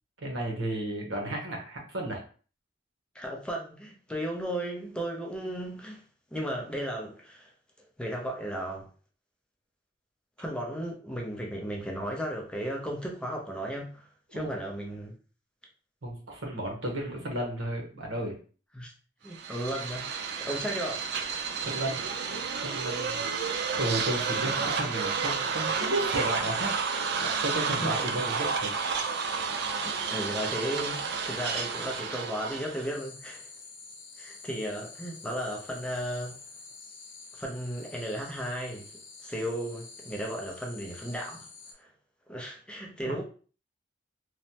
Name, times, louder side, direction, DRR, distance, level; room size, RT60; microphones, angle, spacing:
voice 1, 0.2-2.2 14.3-14.5 16.0-18.4 21.6-22.0 22.6-23.2 23.8-26.7 27.2-28.7 43.0-43.2, right 1 dB, 90° right, 0.9 m, -33 dB
voice 2, 3.1-6.0 6.3-7.5 8.0-8.9 10.4-14.0 14.3-15.1 18.7-18.9 19.2-20.1 20.4-21.1 27.8-28.1 29.8-33.5 34.2-36.4 37.3-38.9 39.2-41.5 41.8-41.9 42.3-43.2, equal, 5° left, 0.5 m, -35 dB
sound 1, 19.3-32.9, right 5 dB, 60° right, 0.4 m, -31 dB
sound 2, 26.1-41.7, left 4 dB, 85° left, 0.6 m, -48 dB
3.1 x 2.0 x 2.8 m
head